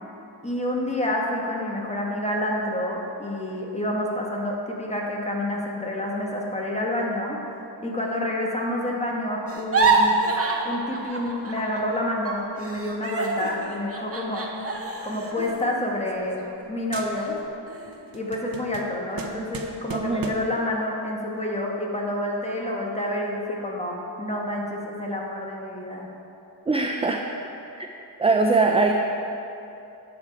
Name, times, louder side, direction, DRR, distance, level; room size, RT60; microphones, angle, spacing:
voice 1, 0.4-7.4 7.8-10.2 10.6-14.6 15.0-16.4 16.7-17.4 18.1-26.1, left 1 dB, 15° left, -2 dB, 1.4 m, -28 dB
sound 1, 9.5-12.0 12.2-16.6 17.1-17.3 17.7-18.2, right 3 dB, 35° right, 1.0 m, -27 dB
sound 2, 15.3-16.7 16.9-17.6 17.9-20.6, right 5 dB, 60° right, 0.8 m, -39 dB
voice 2, 19.9-20.3 26.7-27.2 27.8-27.9 28.2-28.9, right 3 dB, 15° right, 3 dB, 0.4 m, -21 dB
10.0 x 6.8 x 4.7 m, 2.9 s
wide cardioid pair, 105°, 41 cm